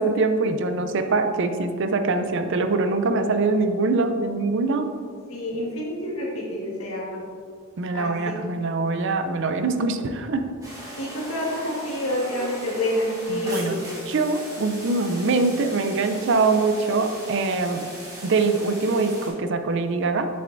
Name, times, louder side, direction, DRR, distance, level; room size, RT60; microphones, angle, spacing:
voice 1, 0.0-4.9 7.8-10.4 13.3-17.9 18.2-20.3, right 3 dB, 60° right, 8 dB, 0.5 m, -23 dB
voice 2, 5.3-7.2 7.9-8.4 11.0-13.8, left 1 dB, 75° left, -4 dB, 1.8 m, -28 dB
sound 1, 10.6-19.3, right 1 dB, 15° right, 1.8 m, -39 dB
7.8 x 6.6 x 2.6 m, 2.1 s
head